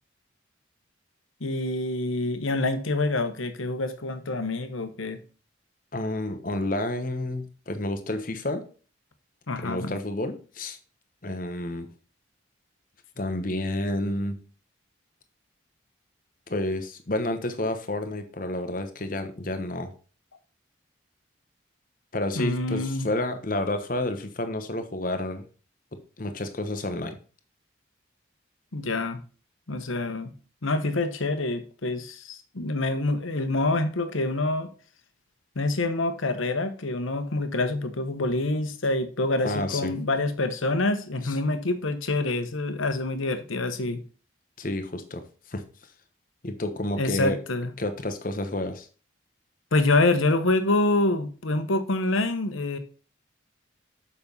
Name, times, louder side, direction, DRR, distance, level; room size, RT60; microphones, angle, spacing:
voice 1, 1.4-5.2 9.5-10.0 22.4-23.1 28.7-29.2 29.7-30.3 30.6-34.7 35.5-44.0 47.0-47.7 49.7-52.8, left 2 dB, 90° left, 9 dB, 1.1 m, -26 dB
voice 2, 5.9-8.6 9.6-10.8 11.2-11.9 13.2-14.4 16.5-19.9 22.1-25.5 26.2-27.2 39.4-39.9 41.2-41.3 44.6-45.6 46.4-47.4 47.8-48.9, left 1 dB, 45° left, 8 dB, 1.0 m, -30 dB
7.1 x 5.6 x 5.4 m, 0.38 s
head